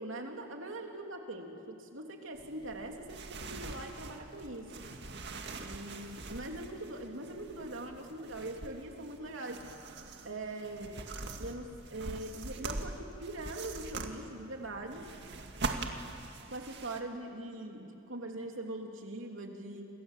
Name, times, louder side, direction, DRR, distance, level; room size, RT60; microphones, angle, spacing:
voice 1, 0.0-4.8 5.6-9.6 10.2-11.0 11.4-15.1 16.5-19.9, right 1 dB, 75° right, 2 dB, 3.1 m, -42 dB
sound 1, 2.3-17.0, right 3 dB, 60° right, 2.0 m, -43 dB
29.5 x 26.5 x 7.5 m, 2.7 s
head